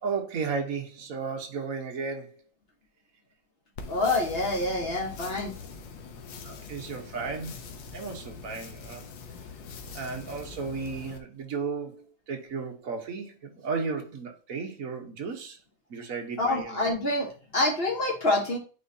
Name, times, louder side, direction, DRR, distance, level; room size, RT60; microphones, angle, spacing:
voice 1, 0.0-2.3 6.4-7.5 7.9-9.0 9.9-15.6 15.9-16.8, right 5 dB, 50° right, 1.3 m, -34 dB
sound 1, 3.8-11.2, left 4 dB, 75° left, 1.6 m, -43 dB
voice 2, 3.9-5.5 16.4-18.6, left 2 dB, 40° left, 1.1 m, -27 dB
9.1 x 4.3 x 2.7 m
omnidirectional pair, 2.1 m